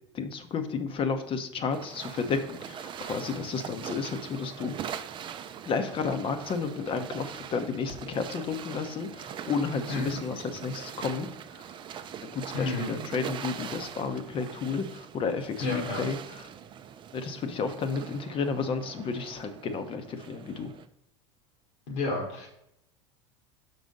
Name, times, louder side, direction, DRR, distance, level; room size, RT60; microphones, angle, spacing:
voice 1, 0.1-4.8 5.7-11.3 11.5-11.6 12.3-16.5 17.1-20.7, left 5 dB, 35° left, 8 dB, 0.8 m, -32 dB
sound 1, 1.7-20.9, right 8 dB, 30° right, 0.5 m, -42 dB
voice 2, 12.5-13.0 15.6-16.0 21.9-22.5, left 3 dB, 70° left, -2 dB, 1.6 m, -30 dB
6.0 x 4.0 x 5.2 m, 0.78 s
hypercardioid pair, 85°, 16 cm